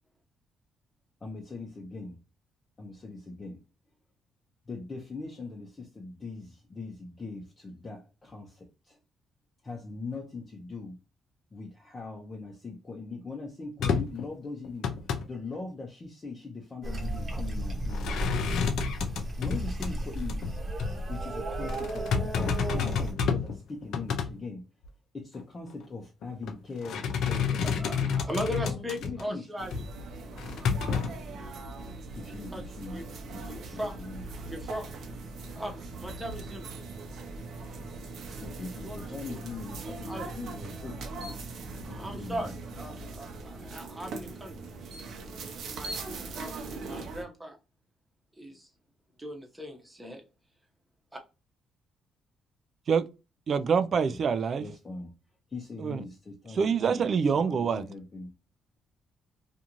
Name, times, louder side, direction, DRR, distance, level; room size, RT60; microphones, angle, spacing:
voice 1, 1.2-2.2 2.8-3.6 4.7-9.0 9.6-11.0 11.5-14.9 15.3-18.3 19.4-20.4 21.1-24.7 25.1-28.2 28.6-29.5 32.1-33.1 33.3-34.2 38.4-41.4 41.7-42.5 54.1-54.2 54.6-55.1 55.5-57.0 57.3-58.3, left 3 dB, 35° left, 0.7 m, -41 dB
sound 1, 13.8-14.3 14.6-15.2 17.9-19.9 20.3-20.5 20.8-21.0 21.7-23.6 23.8-24.3 24.8-24.9 26.2-26.5 26.8-29.2 29.7-29.9 30.4-31.1, left 6 dB, 80° left, 0.5 m, -29 dB
sound 2, 16.8-23.1, right 1 dB, 35° right, 1.0 m, -34 dB
voice 2, 27.6-29.8 32.5-32.6 32.9-33.1 33.5-34.0 34.5-34.9 35.6-36.7 38.8-39.4 40.1-40.3 41.8-42.5 42.8-44.6 45.5-46.5 46.8-47.6 48.4-48.7 49.2-50.2, equal, 10° right, 0.9 m, -38 dB
sound 3, 29.6-47.2, right 3 dB, 70° right, 0.7 m, -40 dB
voice 3, 53.5-54.7 55.8-56.0 56.5-57.8, right 6 dB, 55° right, 0.3 m, -26 dB
2.6 x 2.4 x 2.9 m
cardioid pair, 90°, 0 cm